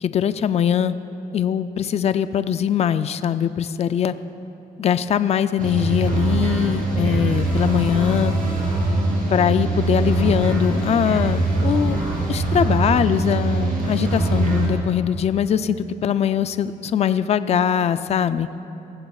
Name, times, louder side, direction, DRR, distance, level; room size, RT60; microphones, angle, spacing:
voice 1, 0.0-1.0 1.3-4.1 4.8-8.3 9.3-12.0 12.3-18.5, left 8 dB, 40° left, 13 dB, 0.3 m, -21 dB
sound 1, 5.6-14.7, right 2 dB, 50° right, 3.1 m, -22 dB
19.0 x 15.0 x 2.3 m, 2.9 s
cardioid pair, 125°, 17 cm